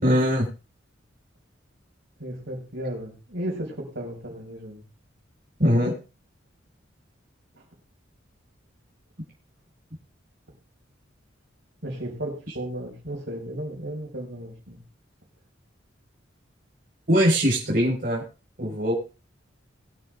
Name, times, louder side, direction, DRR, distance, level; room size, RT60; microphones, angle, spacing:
voice 1, 0.0-0.5 5.6-5.9 17.1-18.2 18.6-18.9, equal, 50° right, -3 dB, 4.4 m, -21 dB
voice 2, 2.2-4.8 7.5-7.6 11.8-14.8, right 1 dB, 65° right, 1 dB, 5.2 m, -34 dB
22.0 x 9.2 x 2.4 m, 0.32 s
head